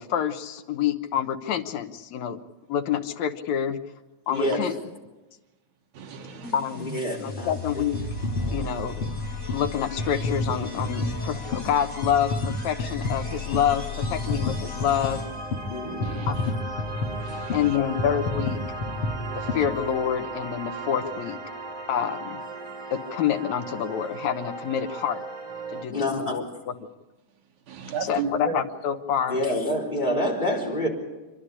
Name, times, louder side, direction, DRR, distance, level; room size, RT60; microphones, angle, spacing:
voice 1, 0.0-2.4 2.7-3.8 4.3-4.7 6.5-6.9 7.2-8.0 8.5-9.0 9.5-15.2 16.3-16.4 17.5-18.6 19.4-21.4 21.9-22.4 22.9-25.2 25.7-26.7 28.0-29.4, left 9 dB, 75° left, 2.3 m, -27 dB
voice 2, 4.3-4.7 6.8-7.6 8.5-8.6 15.7-16.1 25.9-26.3 29.3-30.9, left 1 dB, 15° left, 4.3 m, -27 dB
voice 3, 6.0-6.5 16.0-16.3 17.2-17.6 27.7-28.6, right 6 dB, 80° right, 3.0 m, -33 dB
sound 1, 6.4-15.6, left 3 dB, 5° right, 3.7 m, -37 dB
sound 2, 7.9-20.3 20.9-21.0, left 2 dB, 45° left, 2.4 m, -31 dB
sound 3, 13.0-25.8, right 3 dB, 35° right, 3.0 m, -37 dB
27.0 x 11.5 x 10.0 m
omnidirectional pair, 3.4 m